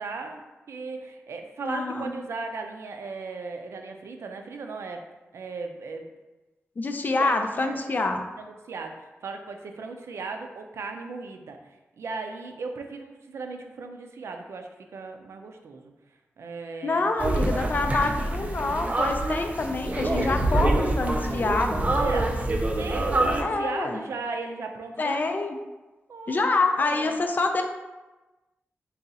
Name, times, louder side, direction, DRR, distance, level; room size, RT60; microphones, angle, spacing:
voice 1, 0.0-5.0 5.3-6.1 7.2-7.8 8.4-15.9 16.4-17.1 21.8-22.4 22.8-25.2 26.1-27.2, right 4 dB, 85° right, 4 dB, 0.4 m, -36 dB
voice 2, 1.6-2.1 6.8-8.2 16.8-21.9 23.4-24.0 25.0-25.5 26.3-27.6, left 3 dB, 40° left, 5 dB, 0.4 m, -26 dB
sound 1, 17.2-23.4, right 1 dB, 30° right, 0.5 m, -26 dB
4.0 x 2.4 x 3.9 m, 1.1 s
wide cardioid pair, 105°, 5 cm